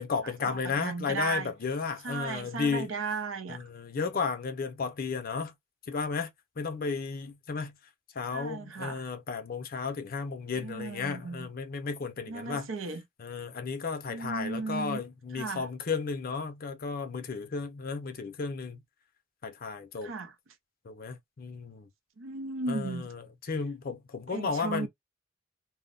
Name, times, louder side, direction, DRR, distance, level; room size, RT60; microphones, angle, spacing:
voice 1, 0.0-2.9 3.5-5.5 5.9-6.3 6.6-7.7 8.1-12.7 13.2-18.8 19.4-20.1 20.9-21.9 22.7-24.9, left 5 dB, 45° left, 0.5 m, -33 dB
voice 2, 0.6-1.5 2.0-3.6 8.3-9.0 10.5-11.5 12.3-13.0 14.1-15.0 15.3-15.7 20.0-20.3 22.2-23.1 24.3-24.9, right 3 dB, 85° right, 0.7 m, -35 dB
2.1 x 2.0 x 3.7 m
head